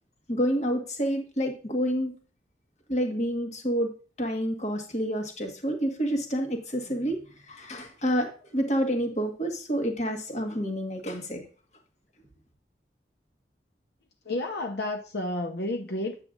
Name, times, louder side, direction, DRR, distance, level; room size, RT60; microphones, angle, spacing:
voice 1, 0.3-2.1 2.9-3.9 4.2-7.2 7.5-11.4, equal, 40° left, 3 dB, 1.5 m, -28 dB
voice 2, 14.3-16.2, left 1 dB, 70° left, 4 dB, 0.8 m, -31 dB
8.9 x 7.6 x 2.5 m, 0.37 s
head